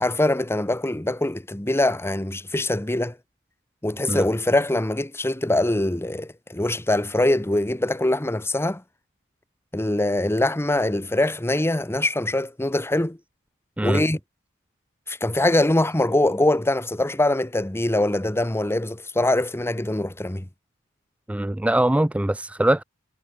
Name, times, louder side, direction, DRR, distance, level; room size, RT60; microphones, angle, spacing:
voice 1, 0.0-3.2 3.8-8.8 9.7-13.2 13.8-14.2 15.1-20.5, left 1 dB, 10° left, 1.0 m, -23 dB
voice 2, 21.3-22.8, right 1 dB, 5° right, 0.3 m, -22 dB
head